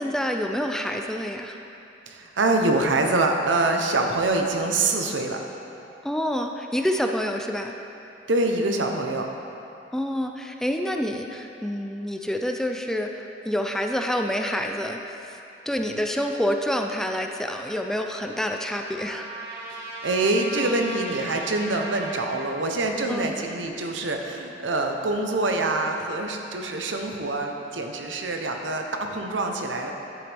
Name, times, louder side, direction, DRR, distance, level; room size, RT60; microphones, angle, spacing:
voice 1, 0.0-1.6 6.0-7.7 9.9-15.4 15.7-19.2 23.1-23.3, equal, 5° left, 3 dB, 0.4 m, -27 dB
voice 2, 2.1-5.4 8.3-9.3 20.0-29.9, right 2 dB, 80° right, 3 dB, 0.8 m, -25 dB
Trumpet, 17.4-22.6, right 1 dB, 60° right, 1.4 m, -38 dB
11.0 x 8.0 x 3.5 m, 2.8 s
head